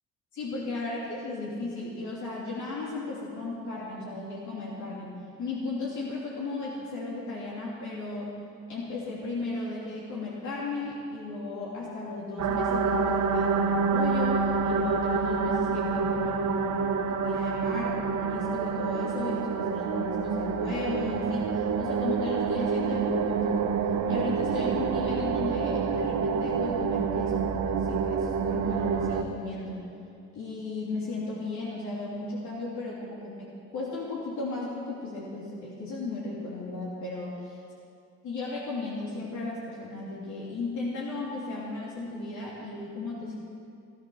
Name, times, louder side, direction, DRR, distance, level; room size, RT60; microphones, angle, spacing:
voice 1, 0.3-5.1 5.4-8.3 8.7-23.8 24.1-29.8 30.3-37.6 38.2-43.4, left 2 dB, 80° left, -5 dB, 3.0 m, -35 dB
sound 1, 12.4-29.2, right 5 dB, 70° right, 1.1 m, -27 dB
17.5 x 11.5 x 6.3 m, 2.4 s
cardioid pair, 110°, 29 cm